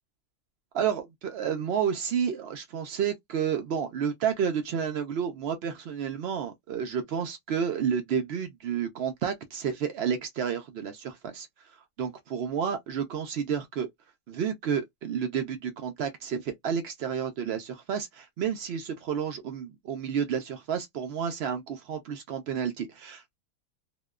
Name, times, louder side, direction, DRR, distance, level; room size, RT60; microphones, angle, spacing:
voice 1, 0.7-11.5 12.0-13.9 14.3-23.4, right 7 dB, 85° right, 0.5 m, -30 dB
2.9 x 2.1 x 2.2 m
omnidirectional pair, 1.6 m